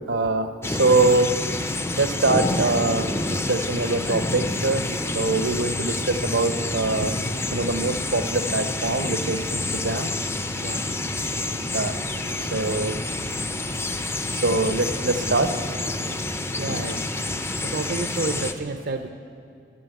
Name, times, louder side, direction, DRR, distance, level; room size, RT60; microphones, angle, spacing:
voice 1, 0.1-1.3 2.0-4.8 5.1-7.1 7.5-10.1 11.7-11.9 12.5-13.0 14.3-15.5, right 3 dB, 80° right, 8 dB, 0.9 m, -23 dB
sound 1, 0.6-18.5, left 2 dB, 15° left, 0.5 m, -28 dB
voice 2, 16.6-17.0 17.7-19.1, right 3 dB, 55° right, 7 dB, 0.6 m, -29 dB
12.5 x 11.5 x 9.2 m, 2.3 s
head